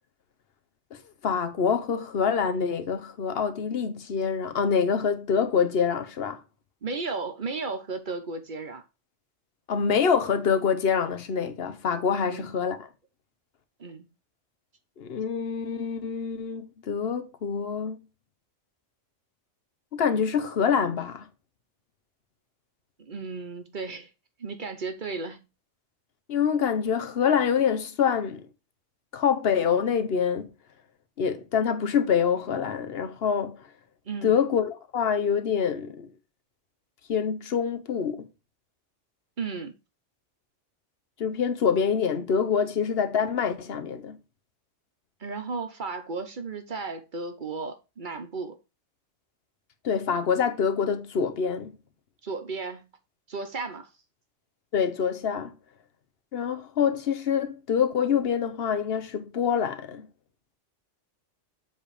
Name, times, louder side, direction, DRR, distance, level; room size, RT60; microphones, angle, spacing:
voice 1, 1.2-6.4 9.7-12.8 15.0-18.0 19.9-21.3 26.3-28.5 29.1-30.5 31.2-33.6 34.2-36.1 37.1-38.2 41.2-44.2 49.8-51.7 54.7-55.5 56.3-60.0, left 7 dB, 55° left, 1.1 m, -26 dB
voice 2, 6.8-8.8 12.3-12.4 13.8-14.1 23.0-24.1 24.4-25.5 34.1-34.4 39.4-39.7 45.2-48.6 52.2-52.9 53.3-53.9, right 4 dB, 45° right, 1.0 m, -34 dB
7.8 x 3.5 x 4.8 m
omnidirectional pair, 1.3 m